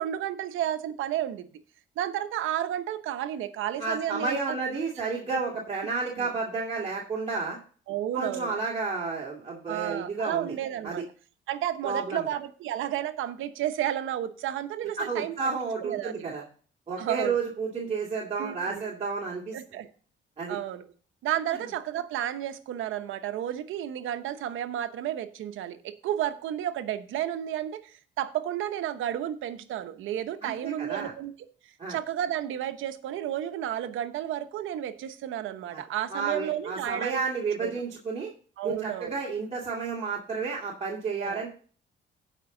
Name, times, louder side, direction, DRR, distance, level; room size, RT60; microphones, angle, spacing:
voice 1, 0.0-1.5 2.0-4.6 5.3-5.4 6.2-6.3 7.9-8.6 9.7-11.0 11.5-15.3 15.8-16.4 17.0-17.4 18.4-18.9 19.5-19.9 20.5-20.8 21.2-31.3 31.6-37.2 37.6-37.7 38.6-39.2 41.2-41.5, right 11 dB, 85° right, 9 dB, 1.0 m, -32 dB
voice 2, 3.8-7.6 8.1-10.5 10.8-11.0 11.8-12.3 15.0-16.4 16.9-19.6 20.4-20.6 30.4-31.1 31.8-32.0 35.7-35.8 36.1-38.3 38.6-41.5, right 4 dB, 30° right, -4 dB, 2.4 m, -31 dB
16.0 x 5.5 x 3.8 m, 0.42 s
cardioid pair, 90°, 20 cm